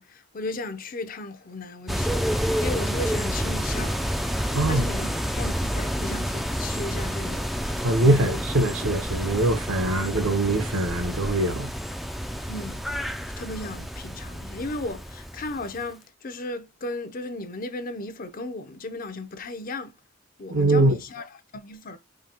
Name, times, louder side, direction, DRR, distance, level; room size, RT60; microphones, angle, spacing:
voice 1, 0.0-4.0 4.7-7.4 8.0-8.4 12.5-12.8 13.4-20.0 20.4-22.0, left 2 dB, 45° left, 0.6 m, -35 dB
sound 1, 1.9-15.9, equal, ahead, 0.3 m, -29 dB
voice 2, 4.5-4.9 7.8-11.7 20.5-21.0, right 1 dB, 75° right, 1.0 m, -22 dB
5.0 x 2.8 x 2.8 m
head